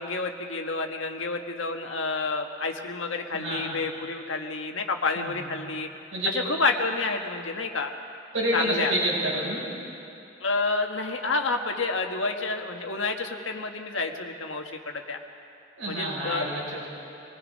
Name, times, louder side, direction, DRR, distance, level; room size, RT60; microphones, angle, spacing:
voice 1, 0.0-5.9 6.3-7.9 8.5-8.9 10.4-15.2 15.9-16.5, left 3 dB, 75° left, 4 dB, 1.5 m, -29 dB
voice 2, 3.3-3.7 5.2-5.5 6.1-6.3 8.3-9.6 15.8-16.8, right 1 dB, 75° right, -4 dB, 6.3 m, -28 dB
26.0 x 19.0 x 5.3 m, 2.7 s
head